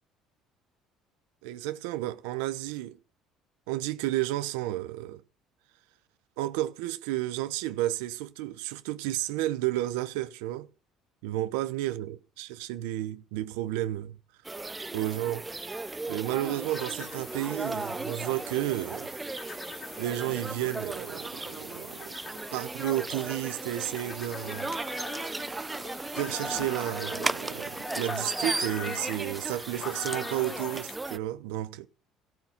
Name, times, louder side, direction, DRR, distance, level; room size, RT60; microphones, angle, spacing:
voice 1, 1.4-3.0 3.7-5.2 6.4-10.7 11.2-14.2 14.9-15.5 16.1-19.1 20.0-22.1 22.5-24.8 26.1-31.9, right 15 dB, 85° right, 0.7 m, -32 dB
sound 1, 14.4-31.2, right 3 dB, 15° right, 0.5 m, -36 dB
sound 2, 16.7-31.0, left 5 dB, 50° left, 2.0 m, -43 dB
14.5 x 5.9 x 7.2 m
supercardioid pair, 85°, 0 cm